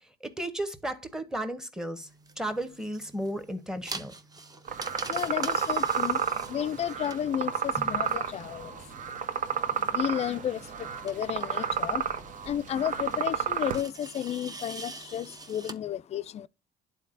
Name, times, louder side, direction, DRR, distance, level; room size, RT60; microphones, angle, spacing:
voice 1, 0.0-2.1 2.4-4.1 7.8-8.3, right 1 dB, 5° right, 1.1 m, -34 dB
sound 1, 2.0-15.7, right 3 dB, 20° right, 0.9 m, -46 dB
Nature at the Lake, 4.7-13.8, right 7 dB, 50° right, 0.9 m, -31 dB
voice 2, 5.1-8.8 9.7-12.1 12.4-16.5, left 10 dB, 40° left, 0.4 m, -32 dB
11.5 x 4.1 x 2.5 m
cardioid pair, 110°, 17 cm